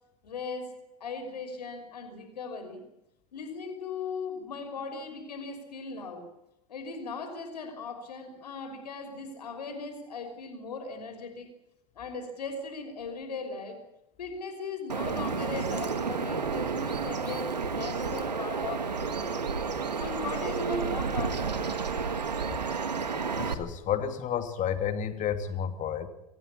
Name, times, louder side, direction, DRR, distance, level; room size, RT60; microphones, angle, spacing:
voice 1, 0.2-0.7 1.0-2.8 3.3-6.2 6.7-11.5 12.0-13.8 14.2-19.4 20.0-21.8, left 4 dB, 80° left, 5 dB, 5.8 m, -38 dB
Bird vocalization bird call bird song, 14.9-23.5, right 5 dB, 90° right, 1.7 m, -31 dB
voice 2, 23.4-26.1, left 8 dB, 40° left, 8 dB, 2.9 m, -31 dB
26.0 x 15.5 x 8.6 m, 0.84 s
hypercardioid pair, 90°, 21 cm